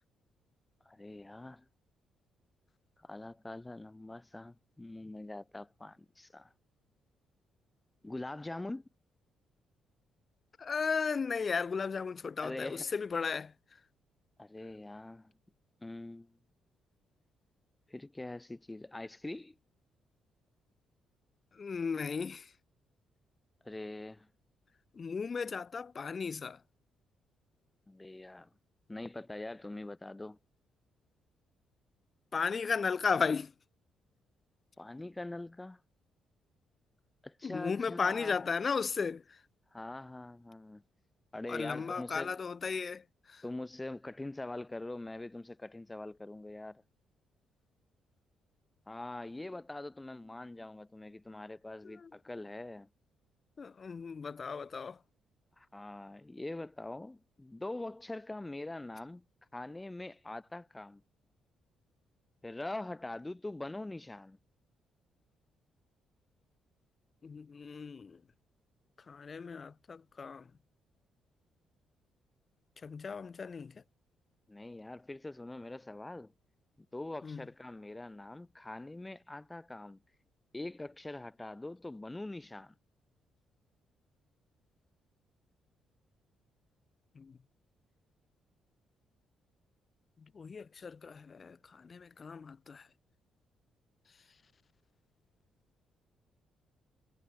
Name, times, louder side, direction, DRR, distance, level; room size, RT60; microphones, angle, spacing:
voice 1, 0.9-1.7 3.0-6.5 8.0-8.9 12.4-12.9 14.4-15.3 15.8-16.4 17.9-19.6 23.6-24.3 27.9-28.5 28.9-30.4 34.8-35.8 37.2-38.5 39.7-40.8 41.3-42.4 43.4-46.8 48.9-52.9 55.6-59.2 59.5-61.0 62.4-64.4 74.5-76.3 76.8-80.0 80.5-82.7, left 2 dB, 15° left, 4.0 m, -43 dB
voice 2, 10.6-13.5 21.5-22.5 24.9-26.6 32.3-33.5 37.4-39.4 41.5-43.4 51.8-52.1 53.6-55.0 67.2-68.2 69.1-70.5 72.8-73.8 77.2-77.5 87.2-87.4 90.2-92.9, left 5 dB, 40° left, 1.8 m, -35 dB
cardioid pair, 90°, 0 cm